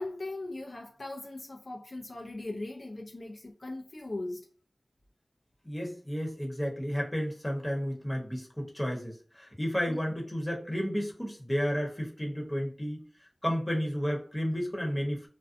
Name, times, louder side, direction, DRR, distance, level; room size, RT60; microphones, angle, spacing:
voice 1, 0.0-4.5 9.9-10.0, left 2 dB, 65° left, 0.5 m, -39 dB
voice 2, 5.6-13.0 13.4-15.3, equal, 20° left, 1.0 m, -32 dB
2.5 x 2.2 x 2.5 m
wide cardioid pair, 45°, 0 cm